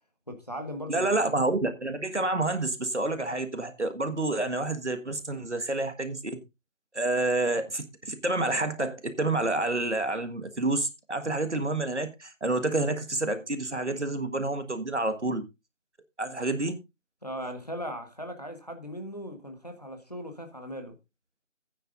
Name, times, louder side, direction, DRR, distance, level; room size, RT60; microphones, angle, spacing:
voice 1, 0.3-1.4 17.2-21.0, equal, 30° left, 1.3 m, -38 dB
voice 2, 0.9-6.2 6.9-15.4 16.2-16.8, right 2 dB, 65° right, 1.6 m, -28 dB
16.5 x 9.2 x 2.5 m
figure-of-eight pair, 175°, 38 cm